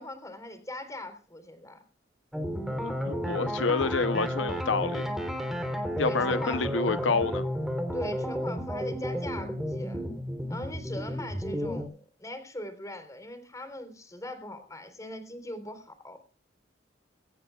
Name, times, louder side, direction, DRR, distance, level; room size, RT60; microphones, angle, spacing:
voice 1, 0.0-1.8 6.0-6.6 7.9-10.0 10.5-16.2, left 1 dB, 20° left, 3.8 m, -40 dB
sound 1, 2.3-11.8, equal, ahead, 3.4 m, -32 dB
voice 2, 2.8-5.0 6.0-7.4, left 4 dB, 80° left, 0.8 m, -28 dB
23.0 x 17.5 x 2.4 m
head